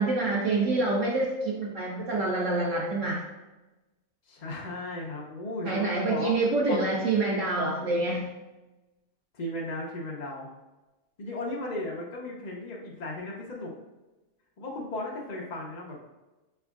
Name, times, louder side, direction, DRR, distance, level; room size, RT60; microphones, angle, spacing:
voice 1, 0.0-3.2 5.6-8.3, right 2 dB, 60° right, -4 dB, 0.9 m, -26 dB
voice 2, 4.3-6.4 6.7-6.9 9.3-10.5 11.2-13.7 14.6-16.0, left 1 dB, 60° left, -3 dB, 0.4 m, -36 dB
5.1 x 3.4 x 2.3 m, 1.1 s
omnidirectional pair, 1.6 m